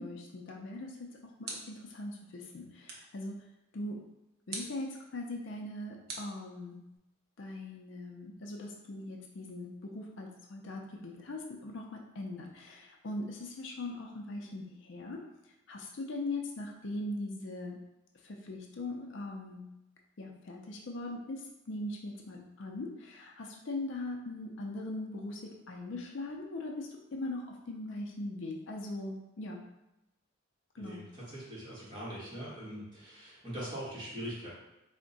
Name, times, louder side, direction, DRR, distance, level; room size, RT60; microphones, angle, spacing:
voice 1, 0.0-4.0 4.5-6.8 7.4-15.2 15.7-17.8 18.2-19.6 20.2-29.6 30.7-31.0, left 2 dB, 65° left, 1 dB, 0.5 m, -40 dB
sound 1, 0.8-2.0 2.9-3.2 4.5-4.9 6.1-7.0, right 3 dB, 50° right, 0.6 m, -44 dB
voice 2, 30.8-34.5, equal, 20° right, -8 dB, 1.3 m, -42 dB
3.5 x 2.1 x 3.9 m, 0.92 s
head